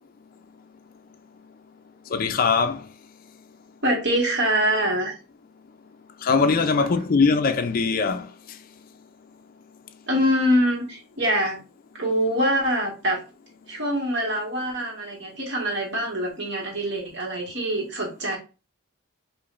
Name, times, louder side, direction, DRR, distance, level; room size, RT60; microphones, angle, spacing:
voice 1, 2.1-2.8 6.2-8.3, left 4 dB, 40° left, 0.3 m, -21 dB
voice 2, 3.8-5.2 10.1-11.6 11.9-13.2 13.7-18.4, equal, 55° right, 1.5 m, -24 dB
4.9 x 2.5 x 2.4 m
head